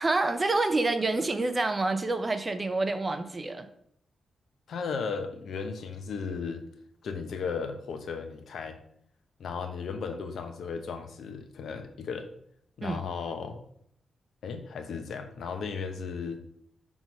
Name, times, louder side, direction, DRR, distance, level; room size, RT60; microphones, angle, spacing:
voice 1, 0.0-3.7 12.8-13.0, right 2 dB, 20° right, 9 dB, 0.6 m, -27 dB
voice 2, 4.7-6.6 7.0-8.8 9.4-12.3 12.8-13.6 14.4-16.4, left 5 dB, 70° left, 6 dB, 0.9 m, -35 dB
6.1 x 3.8 x 6.2 m, 0.68 s
wide cardioid pair, 135°, 0 cm